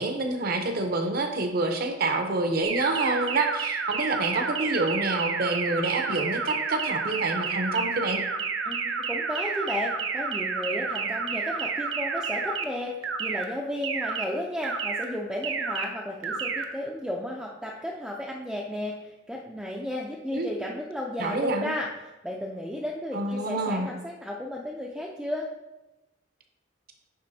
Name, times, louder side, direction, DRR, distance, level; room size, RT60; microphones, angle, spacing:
voice 1, 0.0-8.2 20.3-20.5 21.2-21.7 23.1-23.9, right 2 dB, 55° right, 5 dB, 0.8 m, -27 dB
sound 1, 2.6-12.6 13.0-13.4 13.8-14.2 14.6-15.0 15.4-15.8 16.2-16.6, right 5 dB, 85° right, 0.7 m, -30 dB
voice 2, 8.7-21.9 22.2-25.5, left 1 dB, ahead, -2 dB, 0.4 m, -33 dB
9.4 x 3.9 x 2.7 m, 1.0 s
head